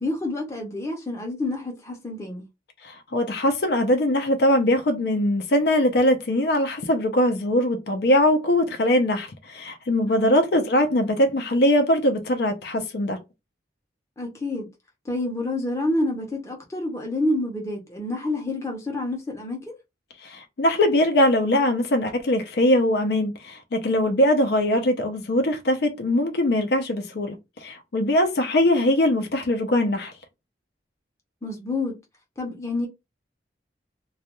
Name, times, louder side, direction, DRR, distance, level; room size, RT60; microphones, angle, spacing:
voice 1, 0.0-2.4 10.1-10.3 14.2-14.7 15.1-19.7 31.4-32.0 32.4-32.9, left 2 dB, 15° left, 0.6 m, -28 dB
voice 2, 2.8-13.2 20.2-27.4 27.6-30.1, left 1 dB, 60° left, 0.5 m, -21 dB
2.3 x 2.2 x 2.9 m
head